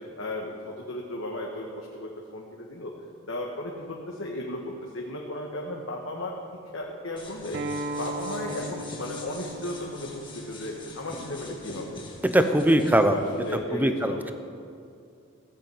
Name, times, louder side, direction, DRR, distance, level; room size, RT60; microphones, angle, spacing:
voice 1, 0.0-2.9 3.3-6.4 6.7-7.6 8.0-12.0 12.4-14.3, left 1 dB, 70° left, -2 dB, 1.5 m, -35 dB
sound 1, 7.2-13.6, left 2 dB, 25° left, 1.8 m, -44 dB
Acoustic guitar, 7.5-12.7, right 2 dB, 55° right, 1.0 m, -38 dB
voice 2, 12.2-13.1 13.7-14.3, right 1 dB, 10° right, 8 dB, 0.8 m, -21 dB
15.5 x 8.3 x 7.7 m, 2.4 s
head